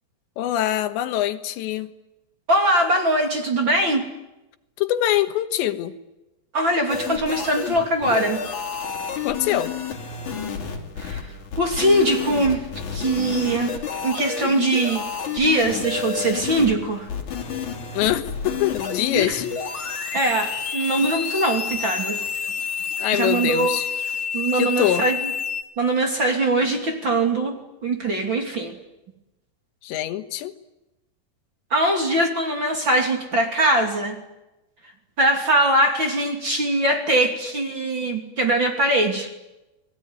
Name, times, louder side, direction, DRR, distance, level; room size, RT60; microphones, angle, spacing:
voice 1, 0.4-1.9 4.8-5.9 9.3-9.7 17.9-19.5 23.0-23.9 24.5-25.0 29.8-30.6, left 12 dB, 90° left, 10 dB, 3.5 m, -24 dB
voice 2, 2.5-4.0 6.5-8.4 11.0-11.3 11.6-12.7 12.9-13.7 14.0-15.0 15.3-17.1 19.1-19.4 20.1-22.2 23.1-23.8 24.3-25.2 25.8-27.6 27.8-28.7 31.7-34.2 35.2-39.3, right 1 dB, 30° right, 3 dB, 2.9 m, -21 dB
sound 1, 6.9-25.6, left 6 dB, 45° left, 3.9 m, -30 dB
29.5 x 20.5 x 9.7 m, 0.99 s
omnidirectional pair, 5.0 m